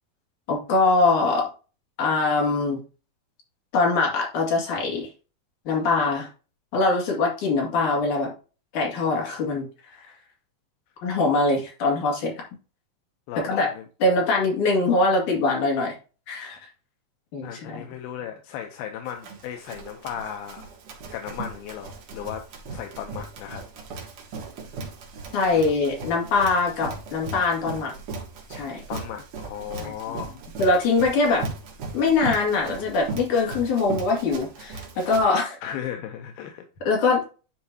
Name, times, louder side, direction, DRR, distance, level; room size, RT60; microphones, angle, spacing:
voice 1, 0.5-1.5 2.0-2.8 3.7-5.1 5.7-6.3 6.7-8.3 8.7-10.1 11.0-12.4 13.4-13.7 14.0-16.0 16.3-16.6 17.3-17.8 25.3-27.9 28.5-28.8 29.8-29.9 30.6-31.5 31.9-35.6 36.9-37.2, left 3 dB, 60° left, 3.7 m, -23 dB
voice 2, 13.3-13.8 17.4-20.6 21.1-23.7 28.9-30.3 35.6-36.7, left 9 dB, 85° left, 2.6 m, -36 dB
Run, 19.1-35.2, right 4 dB, 55° right, 2.3 m, -38 dB
10.5 x 4.5 x 2.8 m
omnidirectional pair, 4.2 m